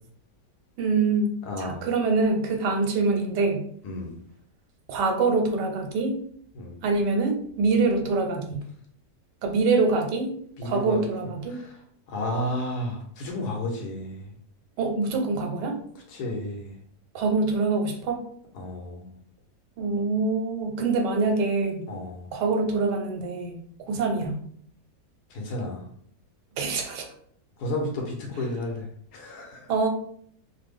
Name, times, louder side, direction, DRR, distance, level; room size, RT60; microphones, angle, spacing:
voice 1, 0.8-3.6 4.9-6.2 6.8-8.6 9.4-10.3 10.6-11.6 14.8-15.8 17.1-18.2 19.8-21.8 22.3-23.6 23.9-24.4 26.6-27.1 29.7-29.9, right 3 dB, 90° right, 4 dB, 1.3 m, -25 dB
voice 2, 1.5-1.8 3.8-4.2 6.5-6.7 10.6-11.0 11.5-11.6 12.1-14.3 16.1-16.7 18.5-19.1 21.9-22.3 25.3-25.8 27.6-28.9 29.1-29.7, left 1 dB, 75° left, 0 dB, 1.3 m, -32 dB
3.1 x 2.0 x 3.5 m, 0.63 s
omnidirectional pair, 1.8 m